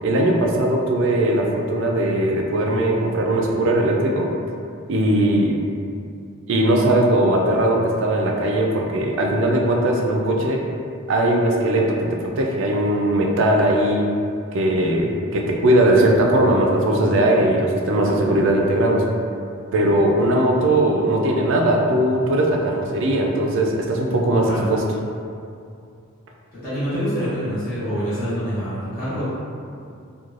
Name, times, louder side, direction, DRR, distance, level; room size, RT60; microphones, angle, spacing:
voice 1, 0.0-4.3 4.9-5.5 6.5-10.6 11.1-14.1 14.5-19.0 19.7-24.8, right 1 dB, 55° right, 0 dB, 0.4 m, -19 dB
voice 2, 24.3-24.7 26.5-29.3, equal, 45° left, -14 dB, 1.2 m, -26 dB
3.1 x 2.2 x 2.4 m, 2.4 s
head